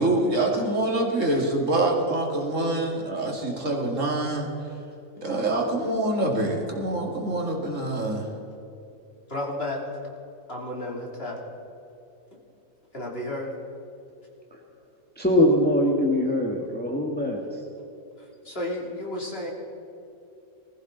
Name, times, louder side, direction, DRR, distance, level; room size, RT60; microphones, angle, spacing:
voice 1, 0.0-4.5 5.2-8.3, right 2 dB, 65° right, 0 dB, 2.7 m, -25 dB
voice 2, 9.3-10.1 10.5-11.4 12.9-13.5 18.2-19.5, left 1 dB, 45° left, -2 dB, 3.2 m, -32 dB
voice 3, 15.2-17.4, left 1 dB, 5° left, -1 dB, 1.5 m, -22 dB
21.0 x 15.0 x 4.0 m, 2.9 s
omnidirectional pair, 1.4 m